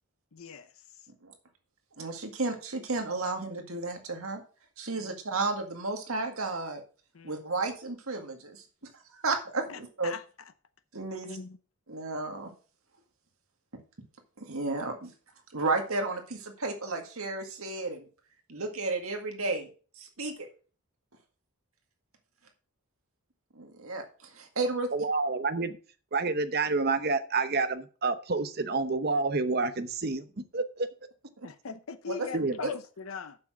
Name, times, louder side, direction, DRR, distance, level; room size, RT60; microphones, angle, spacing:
voice 1, 0.3-0.7 5.0-5.1 7.1-7.4 9.7-10.2 11.2-11.6 31.4-33.4, left 5 dB, 85° left, 0.8 m, -40 dB
voice 2, 2.0-4.4 4.8-6.8 7.2-8.6 9.1-10.2 10.9-11.4 11.9-12.5 14.4-15.1 15.5-18.1 18.5-19.7 20.0-20.5 23.6-24.9 31.4-31.5 32.1-32.7, right 3 dB, 90° right, 2.0 m, -33 dB
voice 3, 24.9-25.8 26.1-30.9 32.3-32.6, right 3 dB, 45° right, 0.8 m, -28 dB
7.6 x 6.1 x 6.3 m
head